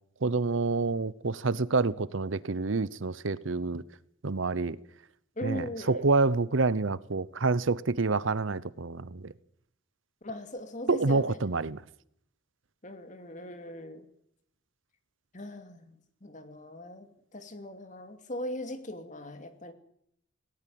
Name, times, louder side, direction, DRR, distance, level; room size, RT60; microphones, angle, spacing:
voice 1, 0.2-3.8 4.2-4.8 5.4-9.3 10.9-11.8, right 3 dB, 70° right, 0.8 m, -28 dB
voice 2, 5.4-6.1 10.2-11.4 12.8-14.1 15.3-19.7, left 1 dB, 40° left, 2.5 m, -40 dB
19.0 x 17.5 x 7.7 m
head